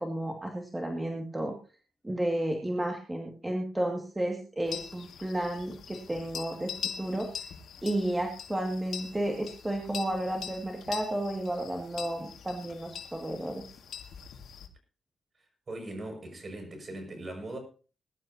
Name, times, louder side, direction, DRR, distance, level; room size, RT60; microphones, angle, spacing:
voice 1, 0.0-1.5 2.0-6.7 7.0-7.3 7.8-13.6, right 1 dB, 10° right, 2.2 m, -32 dB
sound 1, 4.7-14.7, left 8 dB, 80° left, 2.1 m, -43 dB
voice 2, 15.7-17.6, right 1 dB, 40° right, 6.3 m, -39 dB
21.0 x 11.5 x 2.9 m
cardioid pair, 115°, 0 cm